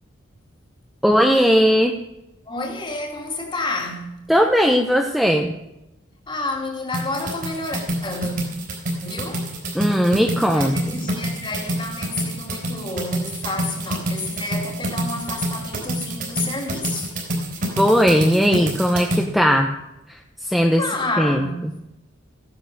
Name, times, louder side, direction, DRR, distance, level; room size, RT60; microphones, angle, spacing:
voice 1, 1.0-1.9 4.3-5.5 9.7-11.1 17.8-19.7 20.1-20.8 21.2-21.5, equal, ahead, 0.8 m, -18 dB
voice 2, 2.5-4.2 6.3-8.4 9.0-9.5 10.5-17.1 20.8-21.7, left 2 dB, 25° left, 2.3 m, -29 dB
sound 1, 6.9-19.2, right 1 dB, 45° right, 3.8 m, -27 dB
15.5 x 10.5 x 6.5 m
head